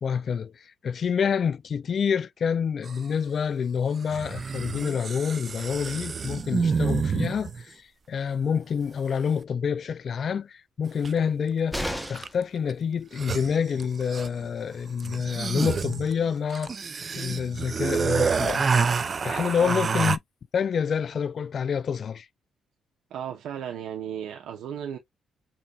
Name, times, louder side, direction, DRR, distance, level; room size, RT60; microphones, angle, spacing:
voice 1, 0.0-11.8 12.1-16.7 17.1-18.7 19.2-20.2 20.5-22.3, left 7 dB, 50° left, 0.3 m, -27 dB
sound 1, 2.9-3.0 4.1-7.6 11.0-11.1 12.0-12.4 12.7-12.8 13.0-14.5 15.0-20.2, right 5 dB, 40° right, 0.4 m, -28 dB
sound 2, 11.7-12.5 14.4-14.5 14.8-14.9, equal, ahead, 0.9 m, -32 dB
voice 2, 23.1-25.0, right 9 dB, 80° right, 0.8 m, -35 dB
5.3 x 2.7 x 2.3 m
cardioid pair, 90°, 0 cm